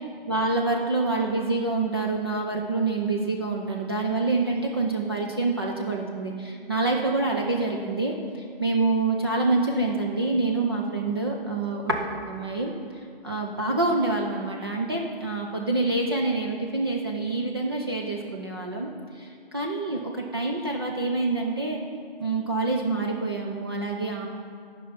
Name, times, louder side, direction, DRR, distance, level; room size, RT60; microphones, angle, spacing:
voice 1, 0.3-12.7 13.2-21.8 22.2-24.3, right 3 dB, 25° right, -1 dB, 0.4 m, -26 dB
10.0 x 5.4 x 5.6 m, 2.4 s
hypercardioid pair, 155°, 30 cm